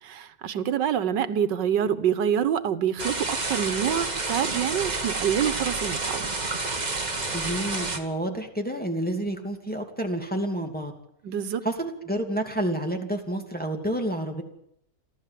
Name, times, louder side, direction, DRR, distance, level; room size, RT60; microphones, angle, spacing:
voice 1, 0.0-6.3 11.2-11.6, right 9 dB, 90° right, 12 dB, 1.7 m, -26 dB
sound 1, 3.0-8.0, right 3 dB, 25° right, 1.8 m, -29 dB
voice 2, 7.3-10.9 11.6-14.4, right 1 dB, 5° left, 2 dB, 2.6 m, -29 dB
29.5 x 12.0 x 7.6 m, 0.74 s
omnidirectional pair, 1.9 m